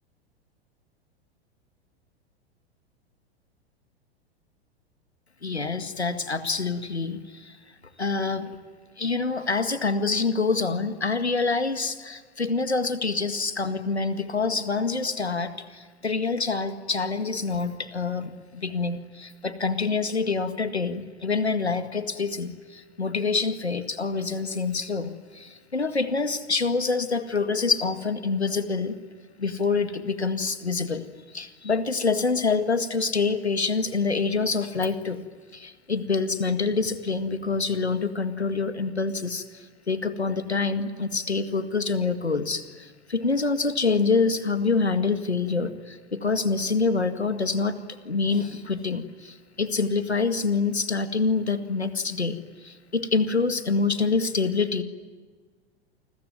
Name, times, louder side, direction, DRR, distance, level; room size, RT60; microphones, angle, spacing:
voice 1, 5.4-7.6 8.0-8.5 9.0-29.0 29.4-35.2 35.5-47.8 48.0-54.8, left 4 dB, 85° left, 10 dB, 2.0 m, -26 dB
29.0 x 21.5 x 9.6 m, 1.5 s
figure-of-eight pair, 95°, 32 cm